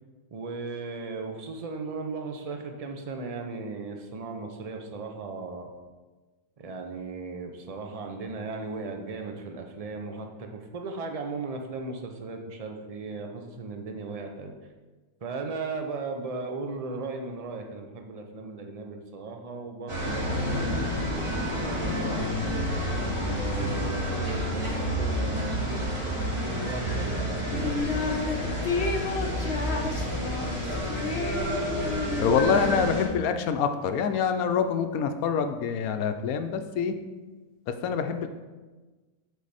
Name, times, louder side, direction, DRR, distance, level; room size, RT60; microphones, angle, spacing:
voice 1, 0.3-5.7 6.6-14.5 15.2-22.3 23.3-30.5, right 3 dB, 55° right, 4 dB, 0.4 m, -37 dB
sound 1, 19.9-33.0, left 1 dB, 20° right, 1.7 m, -30 dB
sound 2, 22.5-27.8, right 4 dB, 70° right, 0.9 m, -35 dB
sound 3, 27.5-28.4 28.6-33.3, left 3 dB, 55° left, 0.9 m, -32 dB
voice 2, 32.2-36.9 37.7-38.3, left 6 dB, 80° left, 8 dB, 1.0 m, -26 dB
8.3 x 4.1 x 4.1 m, 1.3 s
omnidirectional pair, 1.5 m